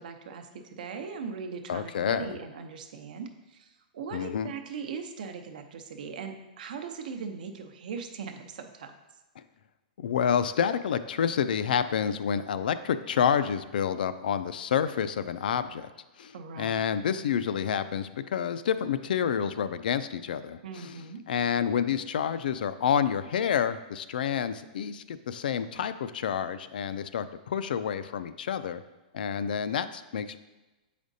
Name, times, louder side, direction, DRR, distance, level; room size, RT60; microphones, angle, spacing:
voice 1, 0.0-8.9 16.3-16.8 20.6-21.2, right 5 dB, 65° right, 6 dB, 0.7 m, -39 dB
voice 2, 1.7-2.3 4.1-4.5 10.0-15.9 16.2-20.9 21.3-28.8 29.1-30.4, left 8 dB, 80° left, 12 dB, 0.4 m, -29 dB
7.1 x 5.0 x 2.7 m, 1.1 s
hypercardioid pair, 155°, 5 cm